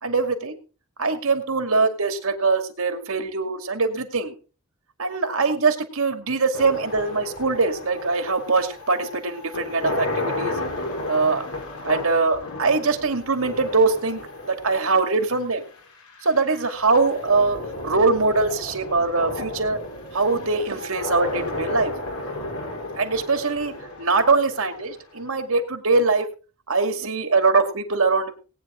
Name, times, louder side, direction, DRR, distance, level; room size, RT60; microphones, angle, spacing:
voice 1, 0.0-0.6 1.0-4.3 5.0-10.6 11.1-11.5 11.8-15.6 16.2-19.8 20.1-21.9 22.9-26.3 26.7-28.4, right 3 dB, 65° right, 7 dB, 2.3 m, -22 dB
sound 1, 6.5-25.6, left 2 dB, 85° left, 5.5 m, -33 dB
19.0 x 9.6 x 3.8 m, 0.36 s
head